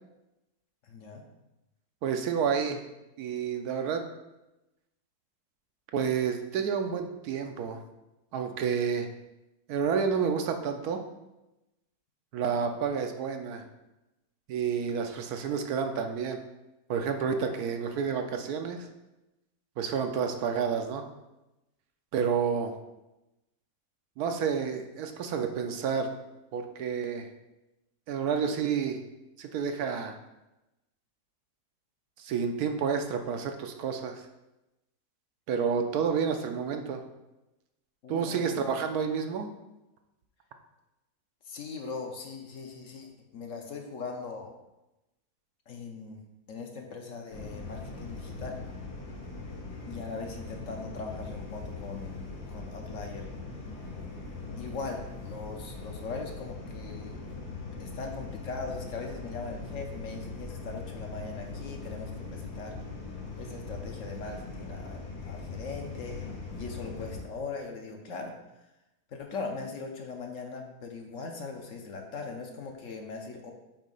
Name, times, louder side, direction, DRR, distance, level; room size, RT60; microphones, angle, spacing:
voice 1, 0.8-1.2 20.3-20.4 38.0-38.6 41.5-44.5 45.7-46.2 46.5-48.6 49.8-53.3 54.6-57.2 57.8-62.8 63.4-66.2 66.6-68.3 69.1-73.5, left 4 dB, 60° left, 2 dB, 1.1 m, -40 dB
voice 2, 2.0-2.8 3.2-4.0 5.9-7.8 8.3-9.1 9.7-11.0 12.3-13.6 14.5-16.4 16.9-18.9 19.8-21.0 22.1-22.7 24.2-26.1 26.5-27.3 28.1-29.0 29.4-30.2 32.2-34.3 35.5-37.0 38.1-39.5, right 6 dB, 75° right, 6 dB, 1.1 m, -30 dB
sound 1, 47.3-67.2, left 3 dB, 90° left, 1.7 m, -40 dB
7.2 x 2.8 x 5.3 m, 0.96 s
omnidirectional pair, 1.6 m